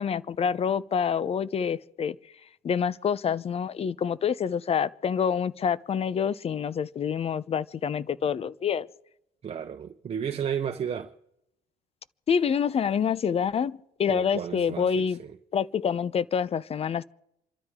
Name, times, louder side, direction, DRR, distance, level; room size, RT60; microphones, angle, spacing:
voice 1, 0.0-2.2 2.6-8.9 12.3-15.2 15.5-17.0, left 7 dB, 35° left, 0.7 m, -27 dB
voice 2, 9.4-11.1 14.1-15.2, right 8 dB, 35° right, 0.9 m, -32 dB
28.0 x 13.0 x 3.7 m
cardioid pair, 110°, 17 cm